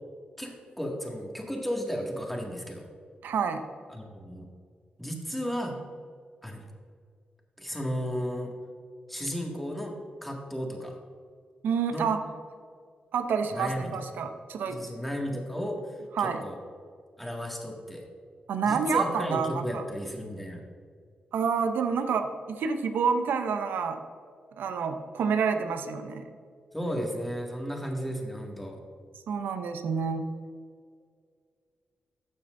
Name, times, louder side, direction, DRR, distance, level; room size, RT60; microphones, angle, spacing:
voice 1, 0.4-2.9 3.9-4.5 5.0-5.8 6.4-6.6 7.6-8.5 9.1-9.9 10.2-11.0 11.9-12.1 13.5-13.9 14.7-16.6 17.2-18.0 18.6-20.6 26.7-28.8, equal, 5° left, 0 dB, 2.0 m, -34 dB
voice 2, 3.2-3.6 11.6-12.2 13.1-14.8 16.1-16.4 18.5-19.8 21.3-24.0 24.6-26.3 29.3-30.3, right 6 dB, 80° right, 8 dB, 0.7 m, -28 dB
12.0 x 7.0 x 2.6 m, 2.1 s
supercardioid pair, 50°, 3 cm